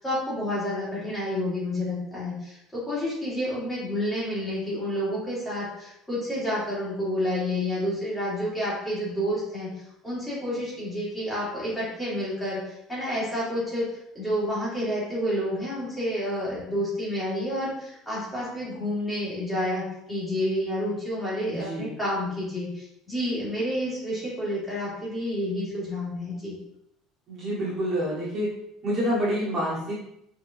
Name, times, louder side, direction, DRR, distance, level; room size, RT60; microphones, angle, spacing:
voice 1, 0.0-13.8 14.1-26.6, equal, 5° left, -8 dB, 1.8 m, -29 dB
voice 2, 21.4-21.9 27.3-28.5 28.8-29.9, equal, 30° right, -7 dB, 1.4 m, -27 dB
4.7 x 3.9 x 2.6 m, 0.80 s
cardioid pair, 175°, 0 cm